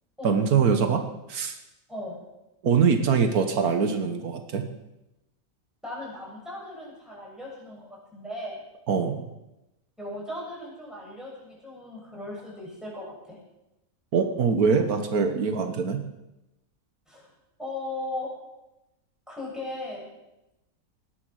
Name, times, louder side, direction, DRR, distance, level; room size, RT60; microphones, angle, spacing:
voice 1, 0.2-1.0 1.3-1.5 2.6-4.7 8.9-9.3 14.1-16.0, right 6 dB, 85° right, 7 dB, 1.7 m, -23 dB
voice 2, 5.8-7.8 8.1-8.6 10.0-13.4 17.1-17.3 17.6-18.3 19.3-20.1, left 1 dB, ahead, -5 dB, 7.8 m, -37 dB
19.5 x 11.0 x 6.5 m, 0.95 s
omnidirectional pair, 1.5 m